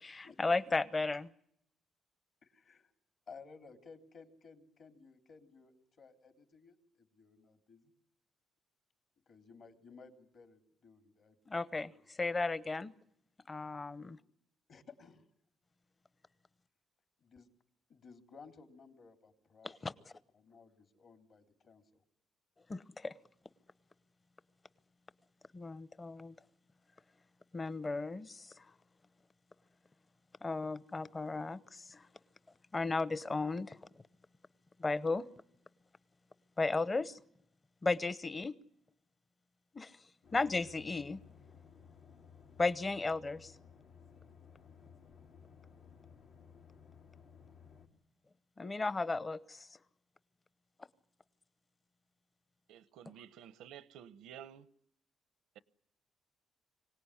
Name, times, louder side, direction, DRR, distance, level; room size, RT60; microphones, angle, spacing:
voice 1, 0.0-1.3 11.5-12.9 13.5-14.2 19.6-19.9 22.7-23.1 25.5-26.3 27.5-28.7 30.4-32.1 32.7-33.8 34.8-35.3 36.6-37.2 37.8-38.6 39.7-39.9 40.3-41.2 42.6-43.5 48.6-49.7, left 3 dB, 25° left, 0.9 m, -35 dB
voice 2, 2.4-2.9 3.3-7.9 9.3-11.3 11.7-12.0 14.7-15.2 17.2-17.5 17.9-19.7 20.3-22.0, left 5 dB, 60° left, 3.3 m, -57 dB
sound 1, 40.2-47.9, left 6 dB, 90° left, 4.2 m, -58 dB
voice 3, 52.7-54.7, right 9 dB, 90° right, 0.9 m, -52 dB
25.0 x 17.5 x 9.9 m
cardioid pair, 90°, 0 cm